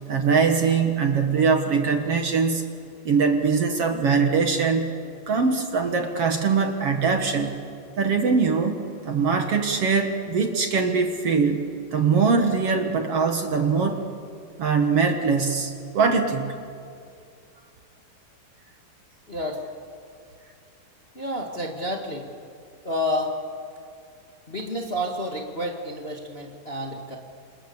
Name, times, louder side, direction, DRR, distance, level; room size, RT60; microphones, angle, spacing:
voice 1, 0.1-2.6 3.1-4.9 5.3-7.6 8.0-8.8 9.0-11.6 11.9-14.0 14.6-16.5, right 5 dB, 55° right, 5 dB, 2.3 m, -22 dB
voice 2, 19.3-19.6 21.1-22.3 22.8-23.3 24.5-27.2, left 1 dB, 25° left, 1 dB, 1.6 m, -29 dB
28.5 x 27.5 x 7.1 m, 2.4 s
omnidirectional pair, 3.7 m